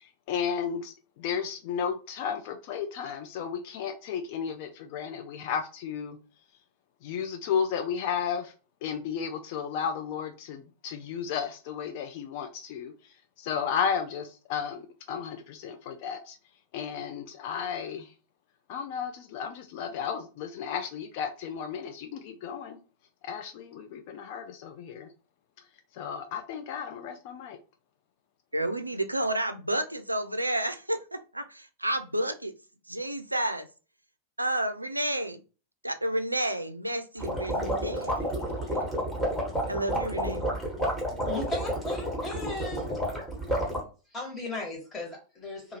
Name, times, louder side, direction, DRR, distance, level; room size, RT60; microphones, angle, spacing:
voice 1, 0.3-0.9 1.2-6.2 7.0-8.5 8.8-12.9 13.4-14.8 15.1-16.3 16.7-18.1 18.7-22.8 23.2-25.1 26.0-27.6, left 7 dB, 50° left, 0.4 m, -33 dB
voice 2, 28.5-32.5 32.9-33.7 34.4-35.4 35.8-38.3 38.6-38.8 39.7-40.4, right 1 dB, 85° right, 0.3 m, -31 dB
sound 1, 37.2-43.8, equal, 5° left, 1.1 m, -30 dB
voice 3, 41.2-42.9 43.5-43.6 44.1-45.8, left 2 dB, 20° left, 1.3 m, -36 dB
2.7 x 2.4 x 2.8 m
figure-of-eight pair, 90°, 0 cm